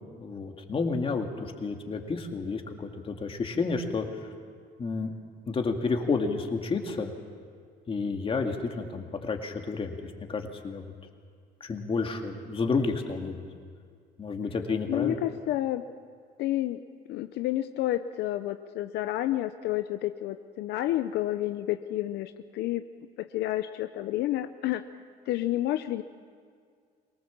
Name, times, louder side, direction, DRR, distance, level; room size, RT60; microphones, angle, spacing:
voice 1, 0.2-4.3 4.8-5.1 5.5-7.1 7.9-10.8 11.6-13.4 14.2-15.2, left 4 dB, 30° left, 3 dB, 2.2 m, -30 dB
voice 2, 14.9-15.9 16.4-16.8 17.1-22.9 23.2-24.9 25.3-26.0, left 14 dB, 80° left, 9 dB, 0.7 m, -30 dB
23.0 x 19.0 x 7.4 m, 2.1 s
cardioid pair, 110°, 17 cm